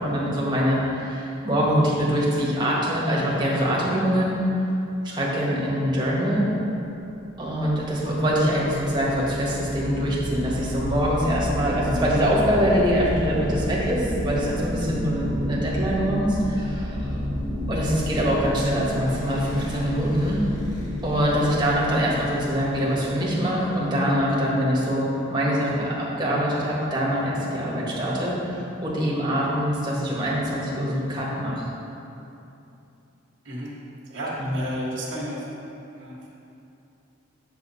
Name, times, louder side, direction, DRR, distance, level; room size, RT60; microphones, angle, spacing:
voice 1, 0.0-4.4 5.0-6.5 7.4-17.0 17.7-20.4 21.0-28.3 28.8-31.7 34.4-34.5, equal, 25° right, -5 dB, 1.6 m, -24 dB
sound 1, 7.0-24.4, equal, 20° left, 1.6 m, -31 dB
voice 2, 34.1-35.5 35.9-36.3, equal, 80° right, -8 dB, 1.6 m, -32 dB
8.4 x 6.8 x 4.1 m, 2.8 s
head